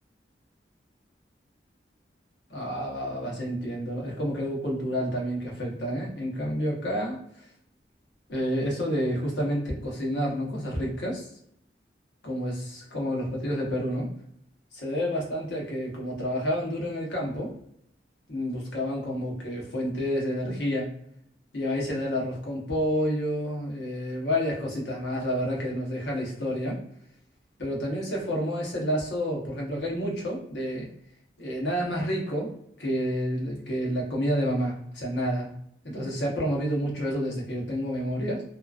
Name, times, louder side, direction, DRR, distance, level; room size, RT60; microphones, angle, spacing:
voice 1, 2.5-7.2 8.3-11.2 12.2-14.1 14.7-17.5 18.3-20.9 21.5-26.8 27.6-30.9 31.4-32.5 32.8-35.5 35.8-38.4, equal, 80° left, -3 dB, 1.0 m, -29 dB
2.8 x 2.4 x 2.4 m, 0.71 s
head